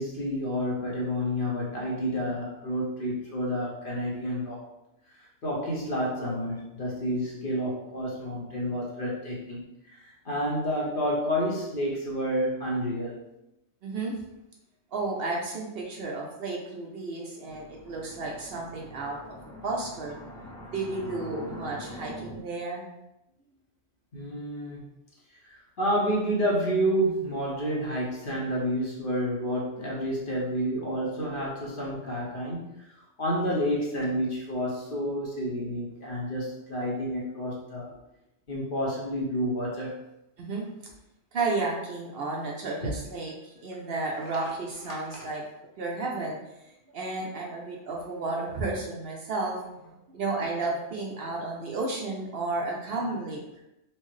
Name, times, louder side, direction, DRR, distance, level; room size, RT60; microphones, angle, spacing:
voice 1, 0.0-4.6 5.4-9.6 9.9-13.1 24.1-24.9 25.5-32.6 33.2-37.9 38.5-40.0 42.8-42.9 45.1-45.2, equal, 50° left, -4 dB, 0.9 m, -29 dB
voice 2, 13.8-14.2 14.9-19.4 19.6-20.2 20.7-22.9 40.4-40.7 41.3-45.4 45.8-46.4 46.6-53.4, right 3 dB, 60° right, -1 dB, 0.8 m, -32 dB
sound 1, 17.5-22.4, left 1 dB, 5° left, 0.3 m, -43 dB
4.4 x 2.0 x 3.1 m, 0.88 s
omnidirectional pair, 1.2 m